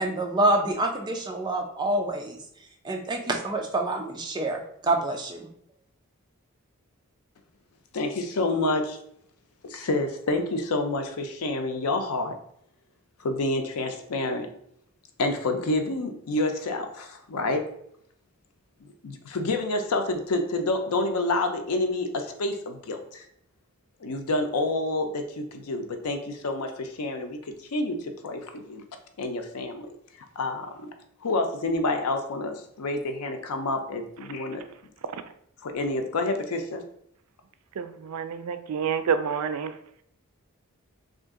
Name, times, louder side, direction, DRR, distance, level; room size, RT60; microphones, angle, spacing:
voice 1, 0.0-2.4 2.8-5.5, right 2 dB, 20° right, 2 dB, 0.4 m, -27 dB
voice 2, 7.9-9.0 9.6-12.4 13.2-14.5 15.2-17.7 19.0-23.2 24.0-28.8 29.2-29.9 30.4-30.9 31.2-34.6 35.6-36.8, left 2 dB, 90° left, 6 dB, 0.5 m, -28 dB
voice 3, 37.8-39.7, right 7 dB, 90° right, 11 dB, 0.4 m, -28 dB
2.8 x 2.5 x 3.6 m, 0.70 s
head